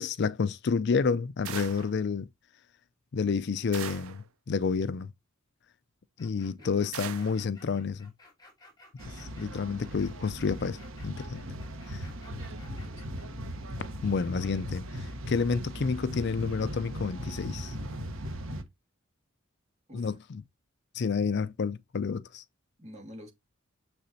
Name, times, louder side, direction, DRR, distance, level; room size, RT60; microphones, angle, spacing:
voice 1, 0.0-2.3 3.1-5.1 6.2-8.1 9.1-10.8 11.0-11.4 11.9-12.1 14.0-17.7 19.9-20.4 20.9-22.4, left 5 dB, 55° left, 0.4 m, -30 dB
sound 1, 1.5-2.0 3.7-4.3 6.9-7.4, right 9 dB, 85° right, 0.6 m, -40 dB
sound 2, 6.2-13.3, left 2 dB, 20° left, 2.6 m, -56 dB
sound 3, 9.0-18.6, equal, 70° right, 1.1 m, -38 dB
voice 2, 11.9-13.4 19.9-20.1 22.8-23.3, equal, 35° right, 2.4 m, -49 dB
6.8 x 6.5 x 2.7 m
head